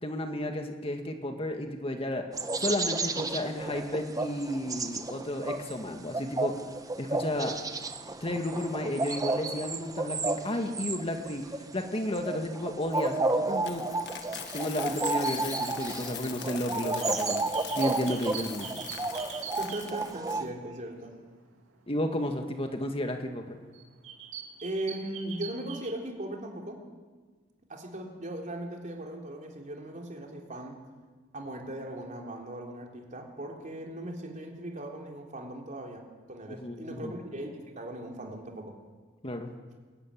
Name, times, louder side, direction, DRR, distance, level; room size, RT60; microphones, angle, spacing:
voice 1, 0.0-2.2 2.6-6.5 7.0-7.5 8.2-11.5 11.7-13.9 14.3-17.5 17.8-18.7 21.9-23.6 36.5-37.1 39.2-39.5, left 1 dB, 30° left, 4 dB, 1.8 m, -32 dB
sound 1, 2.3-20.4, right 3 dB, 20° right, 1.2 m, -32 dB
Coin (dropping), 12.9-20.4, left 9 dB, 60° left, 1.7 m, -42 dB
sound 2, 17.0-20.9 21.4-21.6 22.6-22.7 23.2-23.4 23.7-25.9, right 7 dB, 85° right, 3.0 m, -43 dB
voice 2, 19.6-21.1 24.6-26.8 27.7-30.8 31.3-38.7, right 1 dB, 40° right, 1 dB, 3.5 m, -38 dB
22.0 x 15.0 x 9.9 m, 1.4 s
head